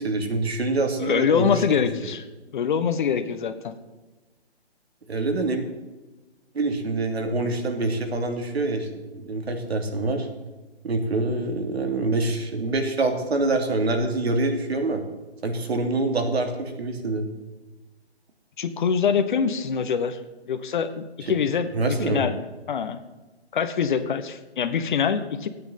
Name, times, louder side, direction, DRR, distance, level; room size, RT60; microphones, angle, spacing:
voice 1, 0.0-1.6 5.1-5.6 6.5-10.3 10.8-15.0 15.4-17.3 21.2-21.3 21.7-22.3, right 2 dB, 70° right, 5 dB, 3.1 m, -25 dB
voice 2, 1.0-2.2 2.5-3.7 18.6-20.2 20.5-22.3 22.7-23.0 23.5-25.5, left 7 dB, 45° left, 10 dB, 1.3 m, -24 dB
14.0 x 9.3 x 7.4 m, 1.2 s
hypercardioid pair, 145°, 33 cm